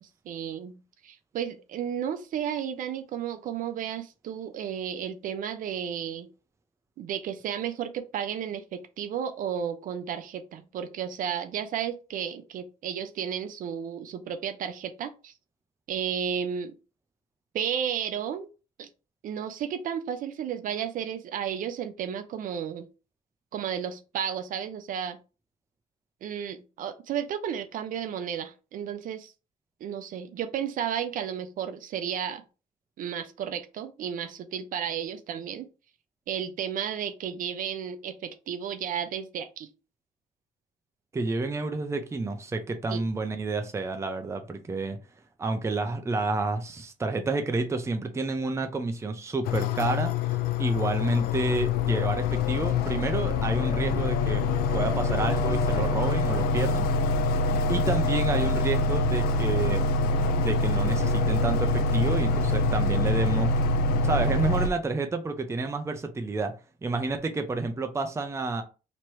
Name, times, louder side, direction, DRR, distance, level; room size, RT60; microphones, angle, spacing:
voice 1, 0.0-6.3 7.0-15.3 15.9-16.7 17.5-18.5 18.8-18.9 19.2-22.9 23.5-25.2 26.2-29.3 29.8-32.4 33.0-35.7 36.3-39.7 42.9-43.0, right 8 dB, 60° right, 0.5 m, -33 dB
voice 2, 41.1-45.0 45.4-54.4 54.7-56.9 57.7-59.8 60.3-63.5 64.0-66.5 66.8-68.6, right 3 dB, 20° right, 0.6 m, -29 dB
sound 1, 49.4-64.7, left 3 dB, 80° left, 0.5 m, -25 dB
3.0 x 2.9 x 4.6 m
cardioid pair, 100°, 16 cm